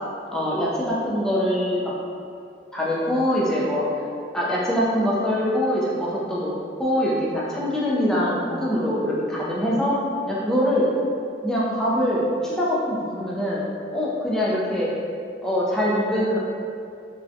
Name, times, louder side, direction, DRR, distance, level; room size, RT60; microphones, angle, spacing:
voice 1, 0.3-1.9 2.7-3.9 4.3-6.5 6.8-10.0 10.3-10.9 11.4-13.6 13.9-14.9 15.4-16.4, equal, 5° left, -7 dB, 0.3 m, -23 dB
2.6 x 2.1 x 2.5 m, 2.4 s
head